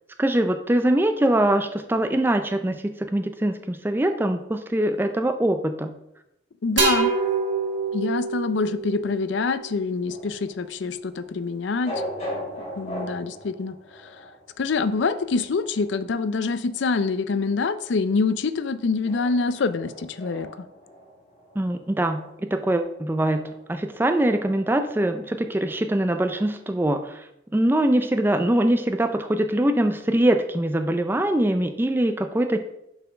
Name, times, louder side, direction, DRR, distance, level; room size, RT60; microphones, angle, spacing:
voice 1, 0.2-6.0 21.6-27.2 27.5-32.6, right 1 dB, 10° right, 7 dB, 0.3 m, -23 dB
voice 2, 6.6-7.1 7.9-12.0 12.8-13.7 14.6-20.5, left 4 dB, 70° left, 13 dB, 0.4 m, -25 dB
sound 1, 6.8-10.4, right 5 dB, 70° right, 3.1 m, -26 dB
sound 2, 10.1-26.6, equal, 35° left, 2.5 m, -40 dB
6.9 x 4.2 x 5.6 m, 0.85 s
head